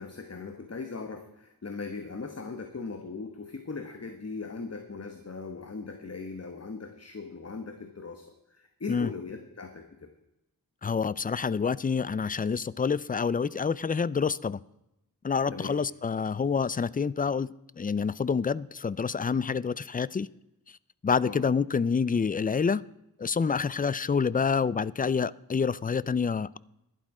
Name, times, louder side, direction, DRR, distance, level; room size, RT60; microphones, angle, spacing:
voice 1, 0.0-10.1 15.5-15.8 21.2-21.4, left 4 dB, 45° left, 6 dB, 1.2 m, -39 dB
voice 2, 10.8-14.6 15.2-17.5 17.8-20.3 21.0-22.8 23.2-26.6, left 5 dB, 25° left, 20 dB, 0.3 m, -27 dB
11.5 x 11.5 x 4.8 m, 0.87 s
wide cardioid pair, 95°, 36 cm